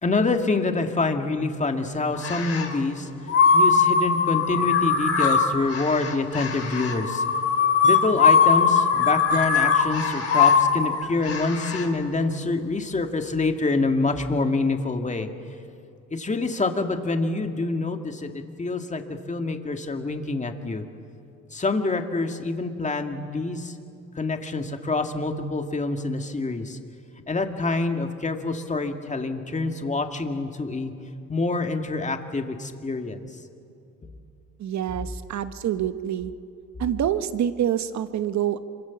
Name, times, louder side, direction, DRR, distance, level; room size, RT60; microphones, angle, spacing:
voice 1, 0.0-3.1 3.5-7.2 7.8-15.3 16.1-20.8 21.5-23.7 24.2-26.8 27.3-30.9 31.3-33.3 34.0-34.1, left 3 dB, 25° left, 5 dB, 2.2 m, -26 dB
sound 1, 2.2-2.8 3.3-11.9, left 5 dB, 50° left, 3.7 m, -21 dB
voice 2, 34.6-36.3 36.8-38.6, right 10 dB, 65° right, 12 dB, 1.2 m, -26 dB
26.0 x 24.5 x 7.2 m, 2.6 s
cardioid pair, 90°, 30 cm